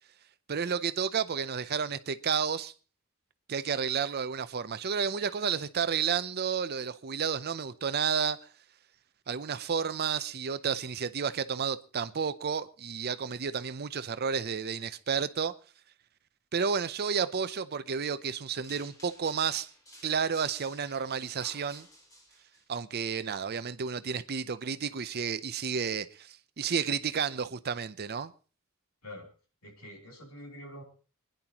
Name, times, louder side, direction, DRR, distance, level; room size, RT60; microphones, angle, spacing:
voice 1, 0.5-2.7 3.5-8.4 9.3-15.5 16.5-19.7 20.0-21.9 22.7-28.3, right 6 dB, 50° right, 0.6 m, -31 dB
sound 1, 18.6-22.6, equal, 15° left, 3.4 m, -53 dB
voice 2, 29.6-30.8, left 1 dB, 80° left, 3.5 m, -46 dB
25.5 x 10.5 x 3.0 m
head